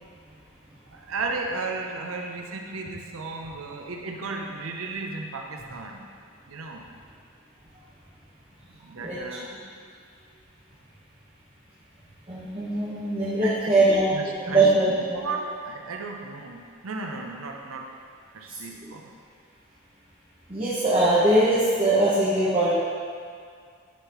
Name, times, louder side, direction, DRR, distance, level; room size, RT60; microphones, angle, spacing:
voice 1, 0.9-6.1 6.5-6.9 8.7-9.6 13.4-17.9 18.3-19.1, right 3 dB, 75° right, 2 dB, 0.7 m, -35 dB
voice 2, 12.3-14.1 14.5-15.2 18.5-18.6 20.5-22.7, right 2 dB, 25° right, -9 dB, 1.1 m, -21 dB
9.9 x 5.7 x 3.0 m, 2.2 s
head